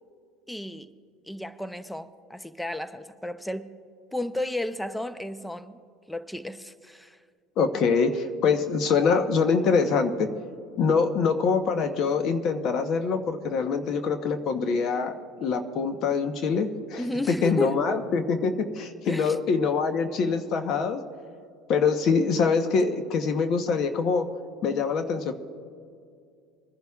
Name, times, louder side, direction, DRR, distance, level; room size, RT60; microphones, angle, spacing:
voice 1, 0.5-0.9 1.3-3.7 4.1-5.8 6.1-7.2 17.0-18.0 19.1-19.4, left 1 dB, 5° left, 12 dB, 0.6 m, -33 dB
voice 2, 7.6-10.3 10.8-21.0 21.7-24.3 24.6-25.3, left 5 dB, 55° left, 8 dB, 0.9 m, -24 dB
27.5 x 10.5 x 2.4 m, 2.3 s
supercardioid pair, 105°, 0 cm